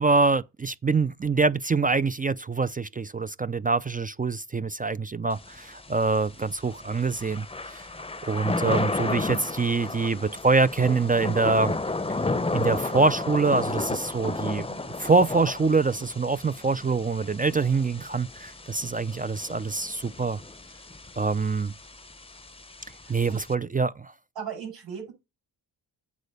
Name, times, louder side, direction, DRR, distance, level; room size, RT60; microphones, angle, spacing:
voice 1, 0.0-7.9 8.2-11.7 12.5-20.4 21.2-21.7 23.1-24.1, right 4 dB, 20° right, 0.4 m, -25 dB
Thunder / Rain, 5.3-23.5, left 3 dB, 15° left, 0.7 m, -33 dB
voice 2, 14.5-14.8 23.0-23.4 24.4-25.1, right 7 dB, 70° right, 5.5 m, -38 dB
8.4 x 4.0 x 6.6 m
cardioid pair, 55°, 45 cm